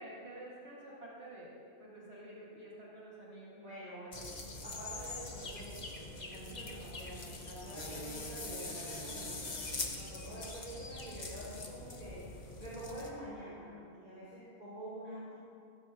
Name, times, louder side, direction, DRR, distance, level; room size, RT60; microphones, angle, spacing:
voice 1, 0.0-1.5 1.8-3.6 6.5-6.6, right 1 dB, 75° right, -6 dB, 2.5 m, -49 dB
voice 2, 3.6-4.3 4.6-9.4 9.9-12.3 12.6-15.3, right 1 dB, 45° right, -10 dB, 4.2 m, -47 dB
sound 1, 4.1-13.1, left 2 dB, 40° left, 1.3 m, -43 dB
16.0 x 15.5 x 3.0 m, 2.5 s
omnidirectional pair, 1.1 m